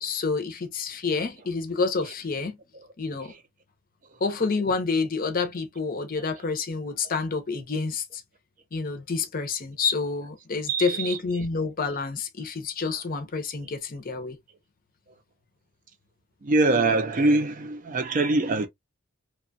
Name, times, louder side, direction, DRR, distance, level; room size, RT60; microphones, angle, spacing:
voice 1, 0.0-2.6 3.0-3.3 4.2-8.2 8.7-14.4, left 4 dB, 45° left, 0.6 m, -28 dB
voice 2, 10.7-11.2 16.4-18.7, right 2 dB, 40° right, 0.5 m, -23 dB
2.8 x 2.2 x 2.5 m
head